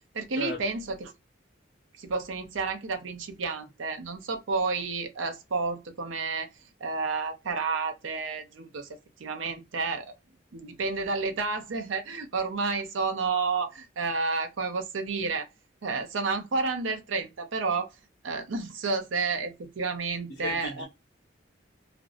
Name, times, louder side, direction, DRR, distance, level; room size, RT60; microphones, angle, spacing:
voice 1, 0.1-1.1 2.0-6.5 6.8-8.9 9.2-10.1 10.5-15.5 15.8-17.9 18.2-20.9, right 4 dB, 90° right, 0.6 m, -30 dB
voice 2, 20.3-20.9, left 1 dB, 80° left, 0.7 m, -35 dB
2.5 x 2.0 x 2.4 m
head